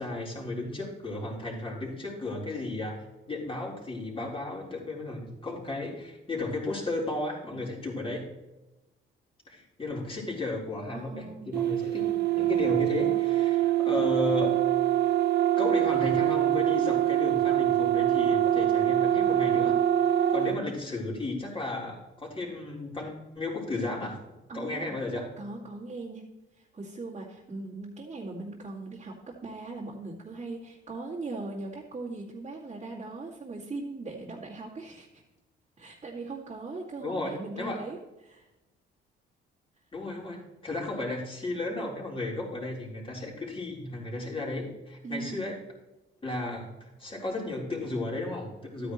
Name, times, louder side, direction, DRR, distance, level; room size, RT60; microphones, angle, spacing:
voice 1, 0.0-8.2 9.5-14.5 15.6-19.7 20.1-24.2 24.5-25.3 37.0-37.8 39.9-45.6 46.2-48.9, left 2 dB, 25° left, -2 dB, 4.0 m, -34 dB
voice 2, 10.9-11.6 24.5-25.0 25.4-26.2 26.6-29.2 29.4-35.2 35.8-38.4 45.0-45.4 48.8-48.9, right 3 dB, 35° right, -6 dB, 2.4 m, -39 dB
sound 1, 11.5-20.6, right 12 dB, 55° right, 0.6 m, -24 dB
12.5 x 9.4 x 3.1 m, 1.0 s
cardioid pair, 90°, 20 cm